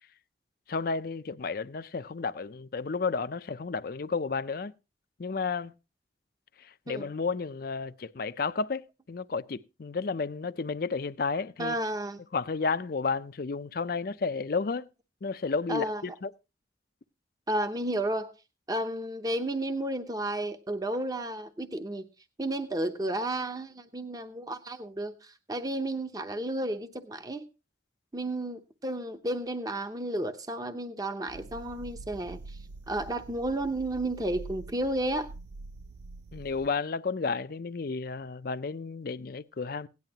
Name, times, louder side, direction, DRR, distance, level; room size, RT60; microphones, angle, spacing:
voice 1, 0.7-4.7 5.2-5.7 6.6-11.7 12.3-14.9 15.2-16.3 36.3-39.9, left 4 dB, 55° left, 0.5 m, -32 dB
voice 2, 11.6-12.2 15.7-16.0 17.5-18.3 18.7-22.1 22.4-27.4 28.1-32.6 32.9-35.3, right 1 dB, 20° right, 0.8 m, -32 dB
sound 1, 31.3-36.7, right 3 dB, 70° right, 0.5 m, -45 dB
17.0 x 10.5 x 2.8 m
head